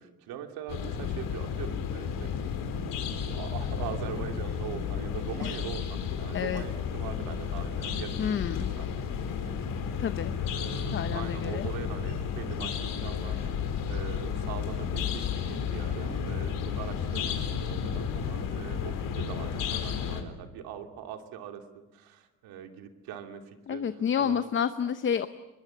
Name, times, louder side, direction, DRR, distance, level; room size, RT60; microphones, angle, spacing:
voice 1, 0.0-2.5 3.2-10.1 10.3-21.6 21.9-24.4, right 9 dB, 80° right, 5 dB, 2.9 m, -42 dB
sound 1, 0.7-20.2, left 7 dB, 65° left, 4.2 m, -32 dB
voice 2, 8.2-8.7 10.0-10.4 10.9-11.7 23.7-25.3, left 8 dB, 35° left, 11 dB, 0.9 m, -29 dB
24.5 x 21.5 x 8.6 m, 1.1 s
cardioid pair, 145°, 36 cm